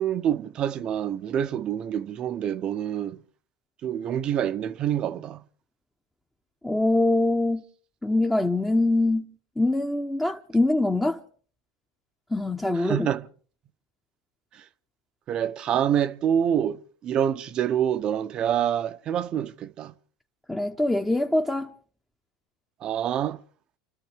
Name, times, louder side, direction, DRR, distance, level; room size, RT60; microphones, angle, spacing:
voice 1, 0.0-3.2 3.8-5.4 12.7-13.3 14.5-14.6 15.3-19.9 22.8-23.4, right 9 dB, 45° right, 0.8 m, -26 dB
voice 2, 6.6-7.6 8.0-9.3 9.6-11.2 12.3-13.1 20.5-21.7, left 2 dB, 10° left, 1.0 m, -23 dB
29.5 x 13.0 x 3.5 m
hypercardioid pair, 90°, 2 cm